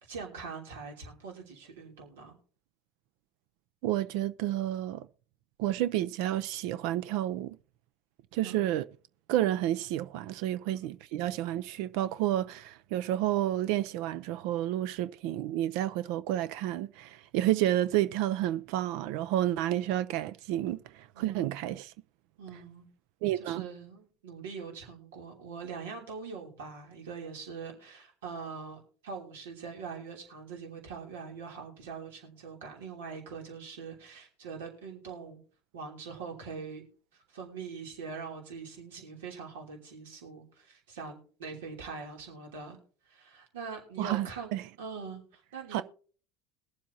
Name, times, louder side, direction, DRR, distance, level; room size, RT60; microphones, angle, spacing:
voice 1, 0.0-2.3 8.4-8.7 10.6-10.8 21.1-21.5 22.4-22.9 23.3-35.4 35.7-36.8 37.1-42.8 43.0-45.8, right 5 dB, 85° right, 3.0 m, -43 dB
voice 2, 3.8-5.1 5.6-7.6 8.3-8.8 9.3-21.9 23.2-23.6 44.0-44.6 45.7-45.8, right 13 dB, 70° right, 0.4 m, -30 dB
21.5 x 7.5 x 2.8 m
hypercardioid pair, 80°, 0 cm